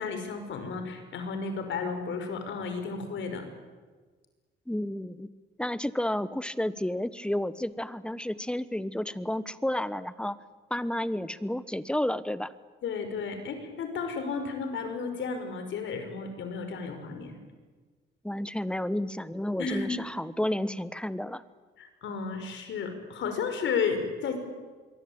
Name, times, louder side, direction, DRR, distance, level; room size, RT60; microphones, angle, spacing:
voice 1, 0.0-3.4 12.8-17.4 19.6-20.0 21.8-24.4, left 5 dB, 70° left, 7 dB, 5.6 m, -33 dB
voice 2, 4.7-5.3 5.6-10.4 10.7-12.5 18.2-21.4, left 1 dB, 5° left, 15 dB, 1.2 m, -31 dB
26.0 x 22.5 x 8.9 m, 1.4 s
cardioid pair, 90°, 20 cm